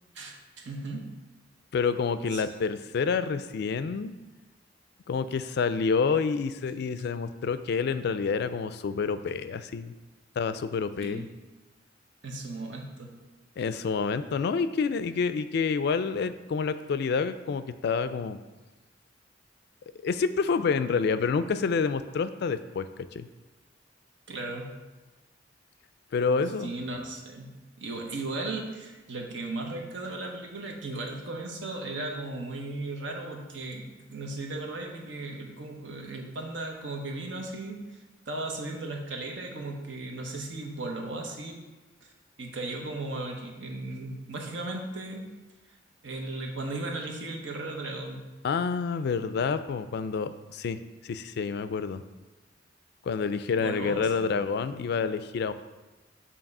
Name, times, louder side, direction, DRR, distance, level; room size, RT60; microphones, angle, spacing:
voice 1, 0.1-1.1 2.3-2.4 11.0-11.2 12.2-13.1 24.3-24.7 26.4-27.5 27.8-38.0 38.3-41.6 42.0-42.1 42.4-45.3 46.0-48.2 53.5-54.3, right 2 dB, 80° right, 1 dB, 1.0 m, -36 dB
voice 2, 1.7-4.1 5.1-9.9 10.4-11.3 13.6-18.4 20.0-23.3 26.1-26.7 48.4-50.8 51.0-52.0 53.0-55.5, left 5 dB, 60° left, 12 dB, 0.3 m, -28 dB
7.3 x 2.9 x 5.3 m, 1.2 s
head